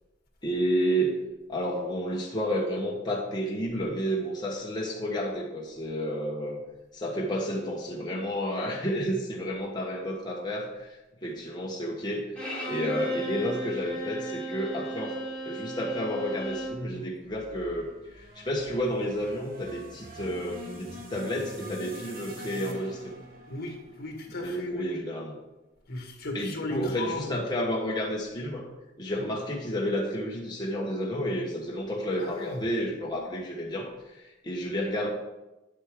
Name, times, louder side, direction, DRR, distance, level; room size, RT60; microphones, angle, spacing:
voice 1, 0.4-1.2 1.5-6.6 6.9-12.3 12.6-15.2 15.4-23.1 24.4-25.3 26.3-28.7 29.0-35.1, equal, 20° left, -3 dB, 1.1 m, -31 dB
Bowed string instrument, 12.4-16.9, equal, 5° left, 2.7 m, -35 dB
sound 1, 16.5-24.8, equal, 50° right, 1.5 m, -45 dB
voice 2, 23.5-25.1 25.9-27.5 29.2-29.3 32.2-32.7, left 2 dB, 55° left, 2 dB, 1.8 m, -36 dB
9.4 x 8.0 x 3.6 m, 1.0 s
head